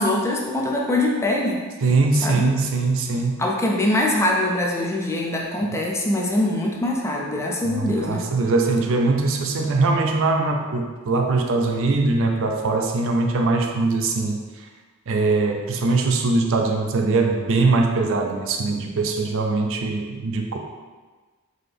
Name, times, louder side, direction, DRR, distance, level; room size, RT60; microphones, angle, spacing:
voice 1, 0.0-1.6 2.2-2.5 3.4-8.2, left 1 dB, 15° left, -1 dB, 0.4 m, -23 dB
voice 2, 1.8-3.4 7.6-14.4 15.1-20.6, right 3 dB, 60° right, 3 dB, 0.4 m, -21 dB
3.9 x 2.8 x 3.4 m, 1.4 s
head